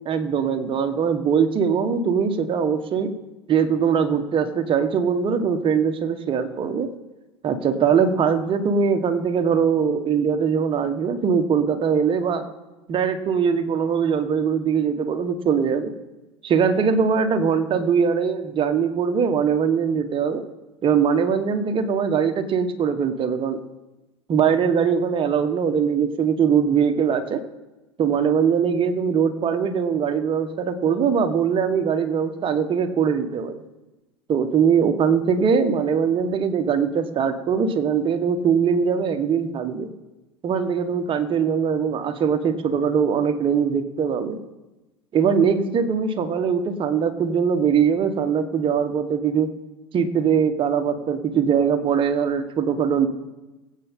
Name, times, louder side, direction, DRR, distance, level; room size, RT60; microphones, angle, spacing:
voice 1, 0.0-3.1 3.5-6.9 7.4-12.4 12.9-15.9 16.4-20.4 20.8-23.6 24.3-27.4 28.0-33.5 34.3-39.9 40.4-44.4 45.1-49.5 49.9-53.1, right 6 dB, 35° right, 7 dB, 1.5 m, -21 dB
22.5 x 8.5 x 3.8 m, 1.1 s
hypercardioid pair, 80°, 15 cm